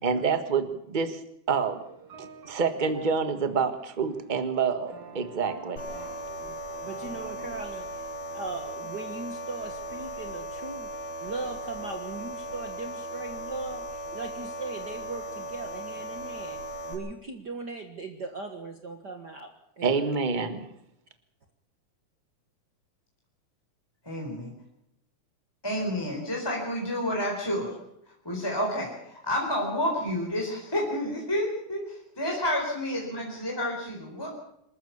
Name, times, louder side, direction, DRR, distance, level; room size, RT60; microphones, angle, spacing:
voice 1, 0.0-1.2 1.5-1.8 2.2-5.8 19.8-20.7, right 5 dB, 25° right, 9 dB, 1.0 m, -27 dB
sound 1, 1.6-7.6, right 4 dB, 80° right, 4.5 m, -48 dB
sound 2, 5.8-16.9, right 1 dB, 40° left, 6.4 m, -37 dB
voice 2, 6.8-8.1 8.3-10.9 11.2-16.6 16.9-20.1, right 3 dB, 40° right, 5 dB, 1.7 m, -39 dB
voice 3, 24.0-24.5 25.6-27.7 28.2-34.3, left 1 dB, 5° left, -1 dB, 4.1 m, -30 dB
26.5 x 14.0 x 7.2 m, 0.79 s
omnidirectional pair, 3.5 m